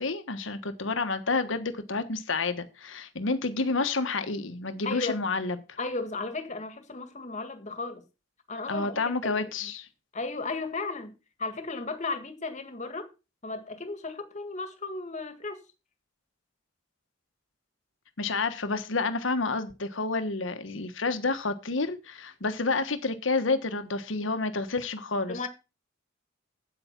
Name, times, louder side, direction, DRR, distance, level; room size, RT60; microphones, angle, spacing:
voice 1, 0.0-5.8 8.7-9.9 18.2-25.5, left 3 dB, 75° left, 1.3 m, -29 dB
voice 2, 4.8-5.2 5.8-8.1 8.5-9.7 10.1-11.1 11.4-13.1 13.4-15.6 25.3-25.5, left 3 dB, 40° left, 1.9 m, -35 dB
8.7 x 8.2 x 5.9 m
head